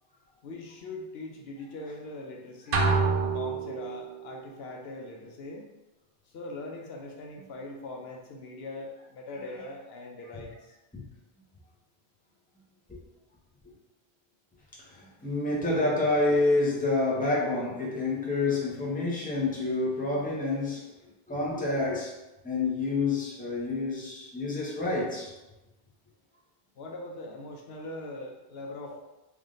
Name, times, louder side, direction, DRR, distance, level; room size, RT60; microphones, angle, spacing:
voice 1, 0.4-5.7 6.3-10.8 26.8-29.0, left 2 dB, 75° left, 0 dB, 0.8 m, -41 dB
sound 1, 2.7-4.2, right 4 dB, 65° right, 0.7 m, -26 dB
voice 2, 14.8-20.9 21.3-22.1 22.4-25.3, left 2 dB, 10° left, -6 dB, 0.8 m, -28 dB
3.5 x 2.6 x 3.7 m, 1.0 s
omnidirectional pair, 1.1 m